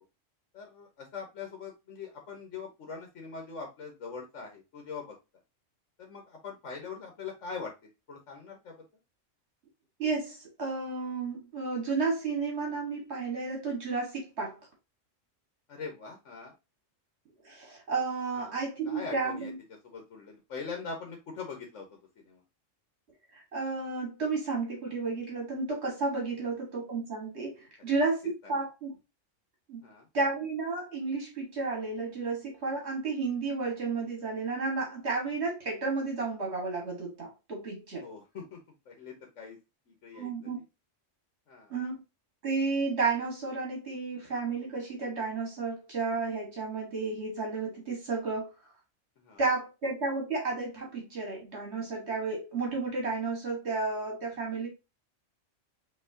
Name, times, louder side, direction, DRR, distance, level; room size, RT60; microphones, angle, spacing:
voice 1, 0.5-5.1 6.0-7.7 8.1-8.7 15.7-16.5 18.3-18.6 18.8-19.5 19.8-21.9 22.2-22.4 26.4-26.5 27.8-27.9 29.8-30.1 38.0-38.6 38.9-39.6 39.9-40.3 41.5-41.7 49.2-49.4, left 5 dB, 80° left, 1.3 m, -42 dB
voice 2, 10.0-14.6 17.4-19.6 23.3-28.9 29.7-29.8 30.1-38.1 40.1-40.6 41.7-42.0 42.4-48.5 49.4-54.7, right 4 dB, 60° right, 1.8 m, -32 dB
5.7 x 3.0 x 2.7 m
omnidirectional pair, 1.3 m